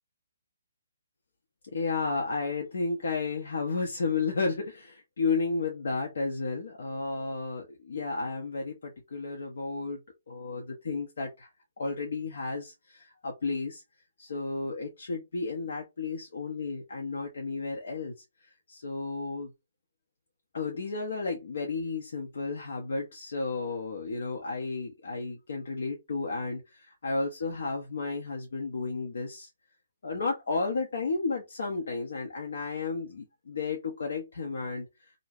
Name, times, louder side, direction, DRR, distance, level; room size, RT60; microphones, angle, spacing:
voice 1, 1.7-10.0 10.3-11.5 11.8-13.8 14.2-18.1 18.7-19.5 20.5-29.5 30.0-34.9, left 4 dB, 65° left, 0.7 m, -32 dB
2.5 x 2.1 x 3.3 m
figure-of-eight pair, 140°, 0 cm